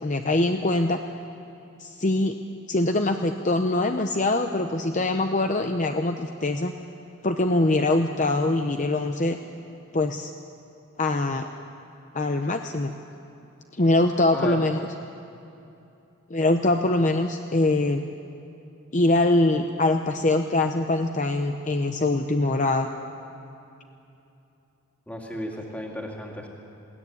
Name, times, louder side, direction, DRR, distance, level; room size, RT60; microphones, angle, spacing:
voice 1, 0.0-1.0 1.8-2.4 2.7-6.7 7.2-9.4 9.9-10.3 11.0-11.5 12.1-12.9 13.8-14.8 16.3-18.1 18.9-22.9, left 2 dB, 35° left, 6 dB, 0.7 m, -23 dB
voice 2, 25.1-26.5, equal, 5° left, 0 dB, 2.4 m, -34 dB
20.5 x 17.0 x 9.7 m, 2.8 s
head